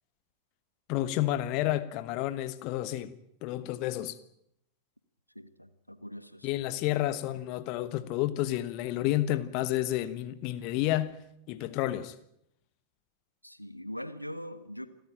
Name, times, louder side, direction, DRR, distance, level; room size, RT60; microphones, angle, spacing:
voice 1, 0.9-3.1 3.4-4.2 6.4-11.2 11.5-12.1, left 14 dB, 45° left, 1.2 m, -30 dB
voice 2, 5.3-6.5 13.4-14.9, equal, 90° left, 1.4 m, -42 dB
28.5 x 13.0 x 8.9 m
figure-of-eight pair, 90°, 0 cm